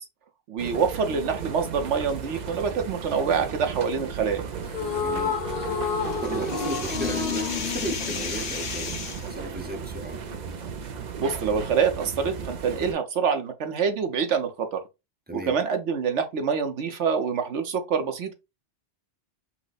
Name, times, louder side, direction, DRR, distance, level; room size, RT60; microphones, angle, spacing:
voice 1, 0.5-4.4 11.2-14.8 15.3-18.3, right 6 dB, 75° right, 1.2 m, -26 dB
sound 1, 0.6-12.9, right 6 dB, 50° right, 0.6 m, -35 dB
sound 2, 4.7-9.1, left 6 dB, 55° left, 1.2 m, -30 dB
voice 2, 5.0-5.4 6.2-9.0 9.3-10.2 15.3-15.6, right 1 dB, 10° right, 0.7 m, -35 dB
sound 3, 5.5-9.3, left 5 dB, 85° left, 1.4 m, -35 dB
5.8 x 2.2 x 4.1 m
omnidirectional pair, 1.2 m